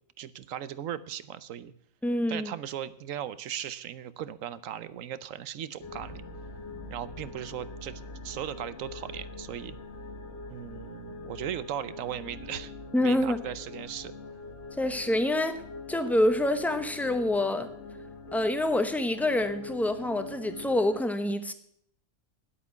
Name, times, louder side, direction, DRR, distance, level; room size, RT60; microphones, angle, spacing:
voice 1, 0.2-1.7 2.3-6.2 6.9-9.8 10.5-12.7 13.0-14.1, right 10 dB, 80° right, 15 dB, 1.1 m, -37 dB
voice 2, 2.0-2.5 12.9-13.4 14.8-15.6 15.9-17.7 18.3-21.5, left 1 dB, ahead, 9 dB, 0.7 m, -26 dB
sound 1, 5.8-21.0, left 3 dB, 55° left, 1.4 m, -43 dB
9.6 x 8.4 x 9.5 m, 0.69 s
omnidirectional pair, 1.4 m